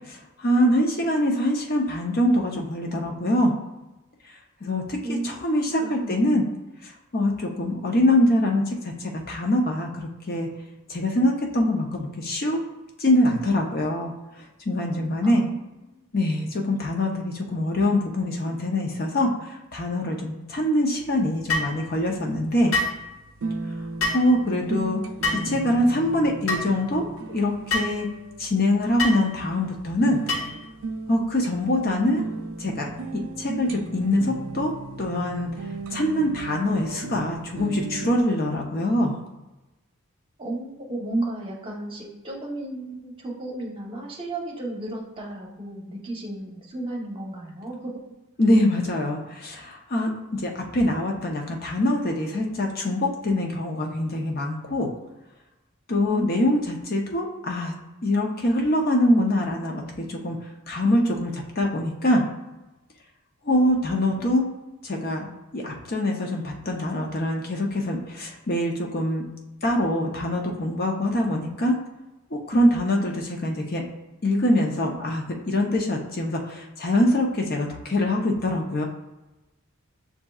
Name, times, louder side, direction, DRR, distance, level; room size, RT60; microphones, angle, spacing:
voice 1, 0.1-3.5 4.6-6.4 6.8-10.5 10.9-12.6 13.0-14.1 14.7-15.4 16.1-22.7 24.1-25.0 25.4-28.1 28.4-30.2 31.1-32.2 32.6-34.7 35.0-35.5 35.9-39.2 48.4-54.9 55.9-57.7 58.0-59.8 60.1-60.4 60.7-62.2 63.4-64.4 64.8-65.3 65.5-69.2 69.6-71.7 72.3-73.8 74.2-78.8, left 1 dB, 45° left, 0 dB, 0.6 m, -24 dB
voice 2, 5.0-6.5 15.2-16.0 40.4-47.9 56.0-56.6, right 2 dB, 25° right, -2 dB, 0.9 m, -34 dB
sound 1, 21.0-38.2, right 3 dB, 70° right, 0.4 m, -36 dB
sound 2, 21.5-21.7 22.7-23.0 24.0-24.2 25.2-25.5 26.5-26.6 27.7-27.9 29.0-29.2 30.3-30.6, left 2 dB, 75° left, 1.3 m, -25 dB
7.1 x 2.7 x 2.3 m, 1.0 s
head